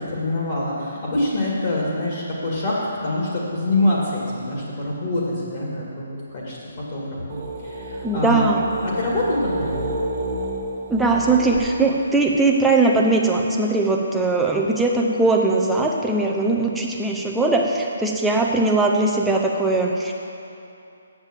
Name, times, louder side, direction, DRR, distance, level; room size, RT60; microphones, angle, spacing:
voice 1, 0.1-6.6 6.9-8.5 8.8-9.9, left 1 dB, 35° left, -5 dB, 2.0 m, -25 dB
sound 1, 7.3-12.4, right 1 dB, 30° right, 1.7 m, -30 dB
voice 2, 8.0-8.6 10.9-20.1, right 3 dB, 5° right, -2 dB, 0.6 m, -20 dB
7.3 x 7.1 x 7.3 m, 2.7 s
hypercardioid pair, 170°, 0 cm